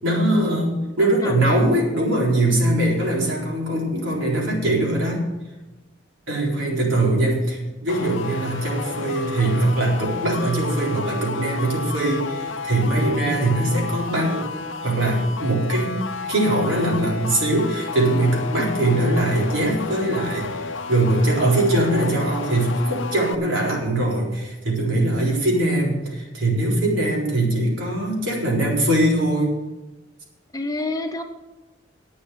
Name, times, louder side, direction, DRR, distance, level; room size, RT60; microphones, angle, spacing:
voice 1, 0.0-5.2 6.3-14.5 14.8-29.5, right 1 dB, 90° right, -3 dB, 4.1 m, -21 dB
voice 2, 1.0-1.6 18.6-19.2 30.5-31.2, left 2 dB, 20° left, 5 dB, 0.9 m, -30 dB
sound 1, 7.9-23.3, left 4 dB, 80° left, 0.6 m, -32 dB
11.5 x 8.4 x 6.3 m, 1.1 s
head